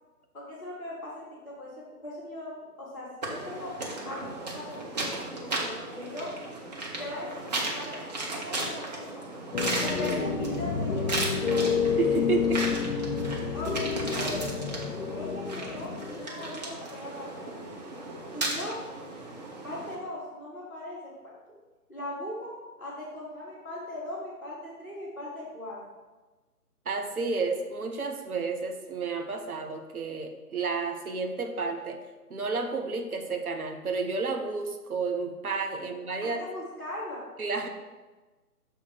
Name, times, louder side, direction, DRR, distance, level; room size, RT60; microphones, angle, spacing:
voice 1, 0.3-2.5 2.8-3.7 4.0-6.3 7.0-9.3 9.8-11.7 13.5-14.5 15.1-17.7 18.3-18.8 19.6-21.6 21.9-22.5 22.8-25.8 35.8-35.9 36.2-37.2, left 1 dB, 5° left, -11 dB, 0.9 m, -39 dB
sound 1, 3.2-20.0, right 2 dB, 25° right, 0.9 m, -35 dB
sound 2, 9.5-16.7, left 6 dB, 55° left, 0.8 m, -29 dB
voice 2, 12.0-12.7 26.9-32.0 32.3-36.4 37.4-37.7, right 4 dB, 65° right, 4 dB, 0.9 m, -31 dB
6.5 x 3.5 x 5.8 m, 1.2 s
figure-of-eight pair, 145°, 46 cm